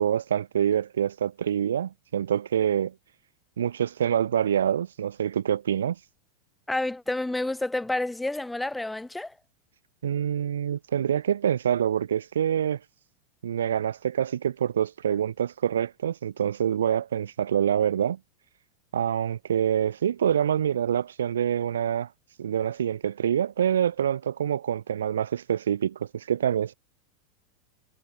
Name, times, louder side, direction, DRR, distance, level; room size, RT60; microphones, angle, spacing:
voice 1, 0.0-2.9 3.6-6.0 10.0-12.8 13.4-18.2 18.9-22.1 22.4-26.7, right 9 dB, 85° right, 0.9 m, -26 dB
voice 2, 6.7-9.3, left 2 dB, 5° left, 0.4 m, -29 dB
hypercardioid pair, 100°, 0 cm